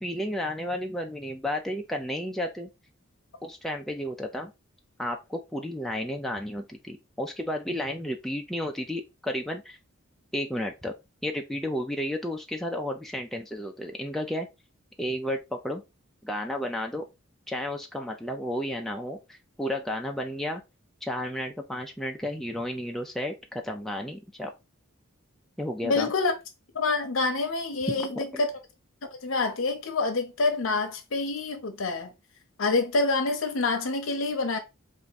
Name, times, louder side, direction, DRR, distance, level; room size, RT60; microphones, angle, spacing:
voice 1, 0.0-2.7 3.4-4.5 5.0-9.8 10.3-10.9 11.2-14.5 15.0-15.8 16.2-17.1 17.5-20.6 21.0-24.5 25.6-26.1 27.7-28.2, left 1 dB, ahead, 0.4 m, -32 dB
voice 2, 25.8-26.3 26.7-28.5 29.1-32.1 32.6-34.6, left 3 dB, 75° left, 0.7 m, -27 dB
3.5 x 2.5 x 4.0 m
head